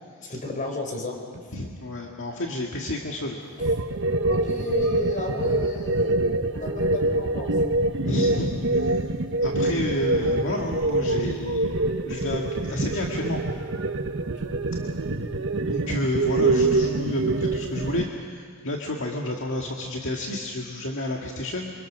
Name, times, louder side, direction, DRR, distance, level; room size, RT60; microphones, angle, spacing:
voice 1, 0.3-1.2 3.6-3.7 4.3-6.2 6.5-7.6 14.2-14.6, left 2 dB, 40° left, 2 dB, 4.6 m, -33 dB
voice 2, 1.5-3.4 8.0-9.0 9.4-13.4 15.7-21.7, left 1 dB, 65° left, 0 dB, 2.0 m, -30 dB
sound 1, 3.6-18.0, right 2 dB, 60° right, 1.2 m, -25 dB
28.0 x 25.0 x 6.4 m, 2.2 s
head